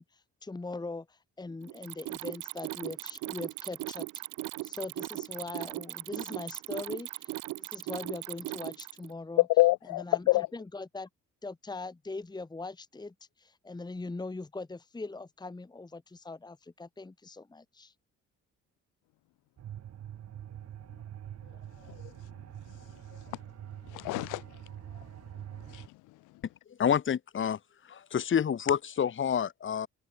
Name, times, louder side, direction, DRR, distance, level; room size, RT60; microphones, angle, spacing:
voice 1, 0.0-4.1 4.6-9.4 10.0-11.1 11.4-17.9, left 3 dB, 15° left, 1.2 m, -41 dB
Mechanisms, 1.7-9.1, right 20 dB, 85° right, 0.5 m, -38 dB
voice 2, 9.4-10.5 21.9-22.1 23.3-23.4 23.9-24.5 25.7-25.9, left 19 dB, 90° left, 0.6 m, -26 dB
sound 1, 19.6-25.9, right 10 dB, 60° right, 1.3 m, -45 dB
voice 3, 26.8-27.6 27.9-29.9, left 8 dB, 40° left, 1.2 m, -28 dB
open air
cardioid pair, 90°, 30 cm